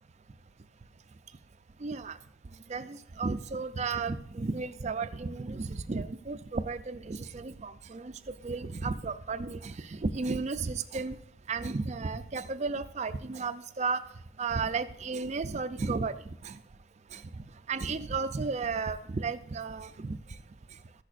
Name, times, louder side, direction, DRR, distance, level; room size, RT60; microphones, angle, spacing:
voice 1, 1.8-2.2 2.7-8.1 8.4-11.2 11.5-14.0 14.4-16.1 16.4-16.6 17.1-17.2 17.7-20.2, right 4 dB, 35° right, 11 dB, 0.4 m, -33 dB
14.0 x 10.5 x 2.5 m, 0.69 s
head